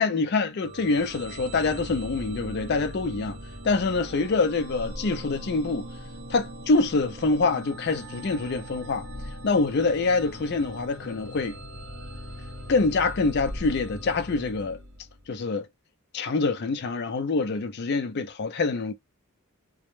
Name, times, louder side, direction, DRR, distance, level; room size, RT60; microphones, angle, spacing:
voice 1, 0.0-3.4 3.6-5.9 6.3-9.1 9.4-11.6 12.7-14.8 15.3-15.7 16.1-18.9, left 3 dB, 50° left, 0.4 m, -25 dB
sound 1, 0.6-15.3, equal, 60° right, 0.8 m, -40 dB
2.2 x 2.0 x 3.0 m
head